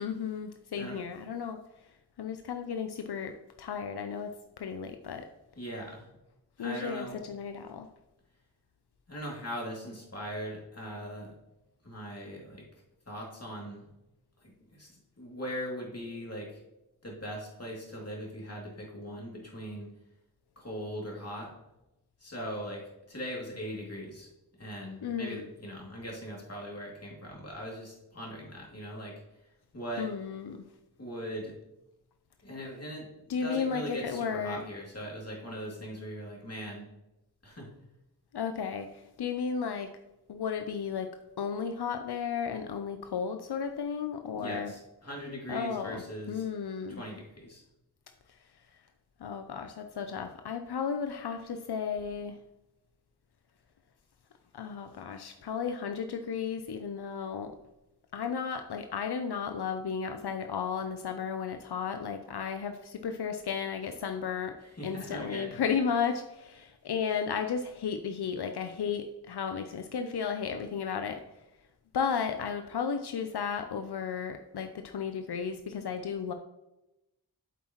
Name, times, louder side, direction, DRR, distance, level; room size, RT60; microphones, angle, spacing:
voice 1, 0.0-1.6 2.2-5.3 6.6-7.9 25.0-25.5 30.0-30.6 33.3-34.6 38.3-39.9 40.3-41.1 41.4-44.7 45.5-47.0 49.2-52.4 54.5-57.5 58.1-64.6 64.8-71.2 71.9-76.3, left 6 dB, 90° left, 7 dB, 0.6 m, -34 dB
voice 2, 5.6-6.1 6.6-7.2 9.1-11.3 11.8-12.7 13.1-13.9 14.7-16.6 17.0-19.9 20.6-21.5 22.2-22.8 23.1-24.3 24.6-29.1 29.7-30.1 31.0-31.5 32.4-36.9 37.4-37.7 44.3-46.4 46.9-47.6 64.6-65.6, equal, 40° left, -3 dB, 2.6 m, -40 dB
8.4 x 7.3 x 3.0 m, 0.94 s
wide cardioid pair, 60°, 38 cm